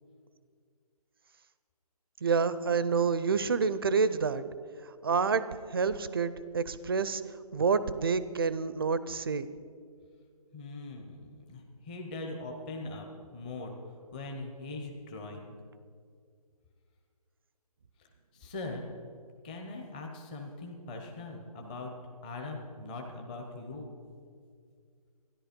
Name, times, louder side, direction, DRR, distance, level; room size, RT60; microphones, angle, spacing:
voice 1, 2.2-4.4 5.0-5.4 5.7-7.2 7.5-9.5, right 5 dB, 40° right, 15 dB, 0.5 m, -28 dB
voice 2, 10.5-13.8 14.1-15.6 18.0-18.1 18.3-18.9 19.4-21.9 22.2-23.9, left 2 dB, 15° left, 2 dB, 0.7 m, -41 dB
13.5 x 11.0 x 5.1 m, 2.2 s
hypercardioid pair, 165°, 20 cm